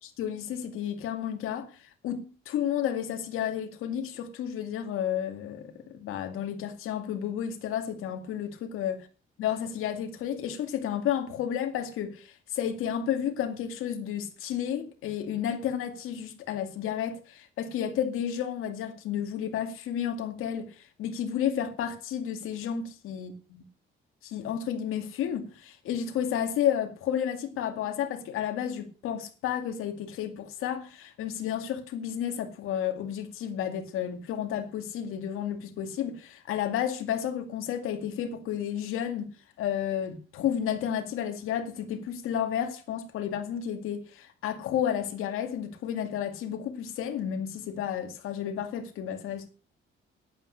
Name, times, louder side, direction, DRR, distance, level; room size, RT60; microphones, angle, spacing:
voice 1, 0.2-1.7 2.0-9.0 9.4-23.3 24.2-39.3 39.6-49.5, left 9 dB, 85° left, 2.2 m, -31 dB
11.0 x 9.0 x 6.5 m
cardioid pair, 140°, 21 cm